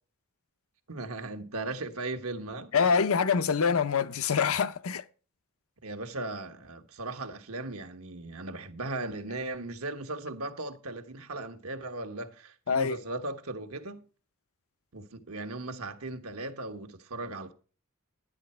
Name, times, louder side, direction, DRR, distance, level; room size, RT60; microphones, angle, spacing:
voice 1, 0.9-2.9 5.8-14.0 14.9-17.5, right 2 dB, 80° right, 1.3 m, -37 dB
voice 2, 2.7-5.0 12.7-13.0, left 6 dB, 70° left, 0.6 m, -25 dB
11.5 x 10.0 x 4.3 m
head